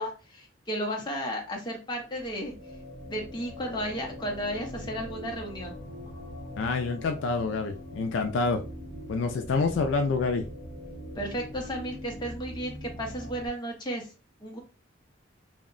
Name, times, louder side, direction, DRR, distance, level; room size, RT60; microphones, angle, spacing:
voice 1, 0.0-2.5 3.1-5.7 11.2-14.1 14.4-14.6, equal, 20° left, 0 dB, 0.6 m, -34 dB
sound 1, 2.0-13.5, equal, 65° right, 0.9 m, -42 dB
voice 2, 6.6-8.6 9.1-10.5, left 4 dB, 65° left, 6 dB, 0.3 m, -27 dB
2.7 x 2.1 x 2.4 m, 0.32 s
head